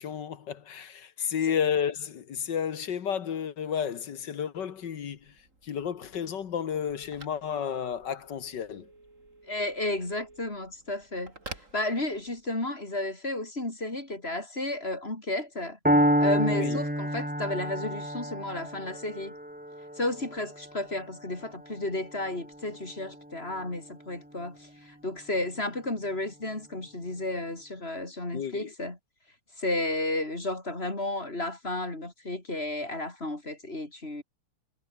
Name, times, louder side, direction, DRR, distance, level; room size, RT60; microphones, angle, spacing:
voice 1, 0.0-5.3 5.6-8.9 16.5-16.8 28.3-28.7, left 8 dB, 55° left, 1.8 m, -32 dB
Telephone, 4.8-12.6, right 2 dB, 35° right, 4.8 m, -51 dB
voice 2, 9.5-11.3 11.7-15.8 16.2-19.3 20.0-29.0 29.6-34.2, left 2 dB, 25° left, 4.6 m, -32 dB
Piano, 15.9-23.8, equal, 5° right, 2.9 m, -29 dB
omnidirectional pair, 2.3 m